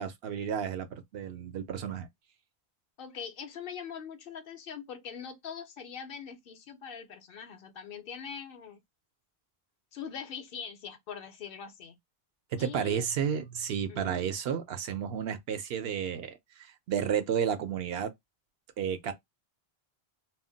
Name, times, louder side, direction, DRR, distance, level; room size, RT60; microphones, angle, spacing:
voice 1, 0.0-2.1 12.5-16.4 16.9-18.1 18.8-19.1, right 8 dB, 75° right, 0.8 m, -32 dB
voice 2, 3.0-8.8 9.9-12.0 12.6-13.1 13.9-14.4, left 7 dB, 65° left, 0.7 m, -42 dB
2.2 x 2.1 x 3.7 m
omnidirectional pair, 1.0 m